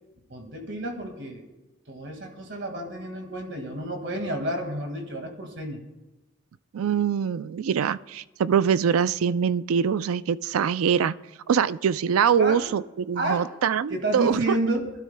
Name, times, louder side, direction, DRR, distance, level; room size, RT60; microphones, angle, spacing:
voice 1, 0.3-1.4 1.9-5.8 12.4-12.7 13.2-13.5 13.9-14.9, right 1 dB, 55° right, 4 dB, 1.9 m, -30 dB
voice 2, 6.7-11.1 11.5-14.6, right 7 dB, 85° right, 16 dB, 0.4 m, -23 dB
23.5 x 12.5 x 2.2 m, 1.1 s
head